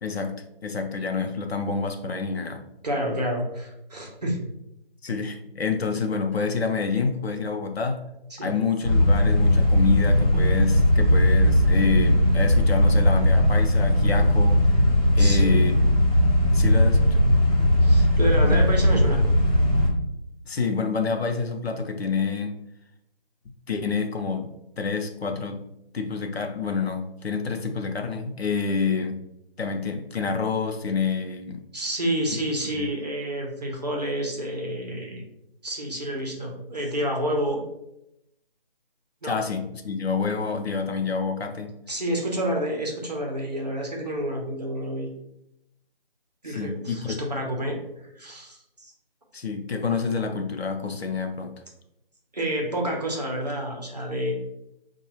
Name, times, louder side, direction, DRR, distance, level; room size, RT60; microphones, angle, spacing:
voice 1, 0.0-2.6 5.0-8.0 8.4-14.7 15.1-15.8 16.5-17.2 17.6-17.7 18.4-18.6 20.5-22.6 23.7-24.5 24.8-25.7 25.9-29.2 29.6-31.6 32.7-32.9 39.2-41.7 46.5-47.2 49.3-51.6, left 5 dB, 85° left, 5 dB, 0.7 m, -28 dB
voice 2, 2.8-4.4 8.3-8.5 15.2-15.7 17.8-19.2 31.7-35.2 35.6-37.6 39.2-39.4 41.9-45.1 46.4-47.8 48.2-48.9 52.3-54.3, right 1 dB, 45° right, 0 dB, 0.8 m, -29 dB
sound 1, 8.8-19.9, left 1 dB, 40° left, 1.0 m, -19 dB
4.6 x 2.3 x 3.0 m, 0.84 s
figure-of-eight pair, 175°, 30 cm